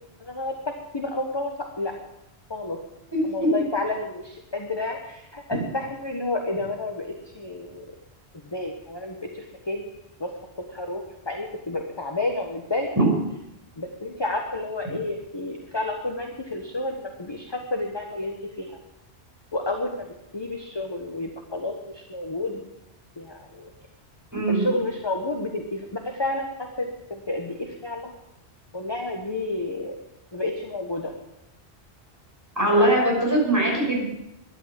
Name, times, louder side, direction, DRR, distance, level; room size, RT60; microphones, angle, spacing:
voice 1, 0.2-0.5 0.9-1.5 1.8-2.0 2.5-2.8 3.3-7.8 8.5-9.9 10.2-10.3 10.7-12.9 13.8-18.8 19.5-20.1 20.3-22.6 23.2-23.7 24.5-28.1 28.7-30.0 30.3-31.1 32.8-32.9, left 2 dB, 25° left, 2 dB, 1.3 m, -30 dB
voice 2, 24.3-24.6 32.6-34.1, right 1 dB, 15° right, -3 dB, 6.1 m, -21 dB
12.0 x 11.5 x 7.5 m, 0.87 s
omnidirectional pair, 1.1 m